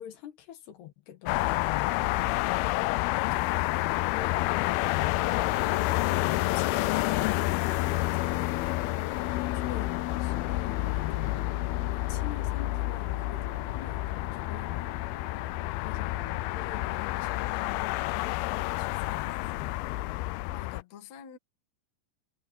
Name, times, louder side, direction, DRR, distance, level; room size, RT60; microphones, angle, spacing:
voice 1, 0.0-1.9 3.1-5.2 9.2-11.6 11.9-14.9 15.8-19.8, left 12 dB, 70° left, 3.6 m, -44 dB
sound 1, 1.3-20.8, left 19 dB, 85° left, 2.2 m, -29 dB
voice 2, 1.9-2.8 20.5-21.4, left 9 dB, 50° left, 2.6 m, -46 dB
sound 2, 5.2-19.1, right 11 dB, 60° right, 2.8 m, -52 dB
omnidirectional pair, 5.0 m